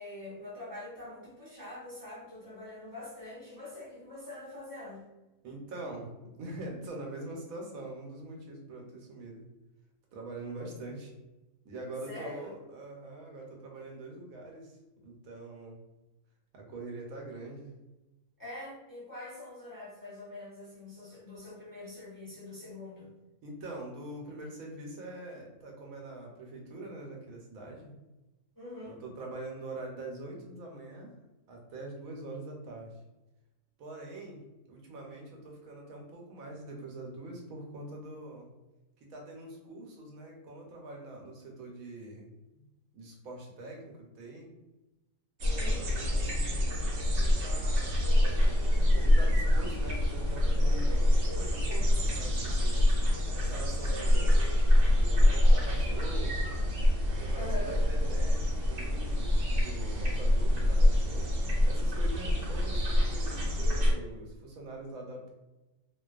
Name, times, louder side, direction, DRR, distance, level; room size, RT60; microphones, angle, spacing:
voice 1, 0.0-5.0 12.0-12.5 18.4-23.1 28.6-29.0 45.4-45.9 57.3-57.8, left 1 dB, 20° left, -8 dB, 0.5 m, -44 dB
voice 2, 5.4-6.1 6.4-9.4 10.1-11.1 11.6-15.8 16.5-17.7 23.4-27.9 28.8-31.1 31.5-32.9 33.8-38.5 39.0-42.6 42.9-44.5 45.6-48.0 48.9-52.9 53.3-54.4 54.9-56.4 57.1-61.3 61.7-65.3, right 2 dB, 80° right, 0 dB, 1.1 m, -44 dB
sound 1, 45.4-63.9, left 1 dB, 65° right, 1.0 m, -26 dB
2.5 x 2.2 x 2.3 m, 1.0 s
omnidirectional pair, 1.5 m